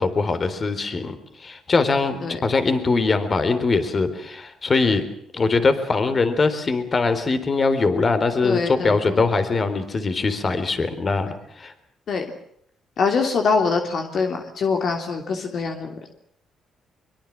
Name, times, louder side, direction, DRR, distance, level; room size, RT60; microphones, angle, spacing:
voice 1, 0.0-5.0 5.3-11.3 11.6-11.7, left 4 dB, 35° left, 10 dB, 3.9 m, -22 dB
voice 2, 8.4-9.2 12.1-12.2 13.0-15.9, left 4 dB, 60° left, 4 dB, 3.1 m, -24 dB
23.5 x 23.5 x 7.5 m, 0.68 s
cardioid pair, 90°, 0 cm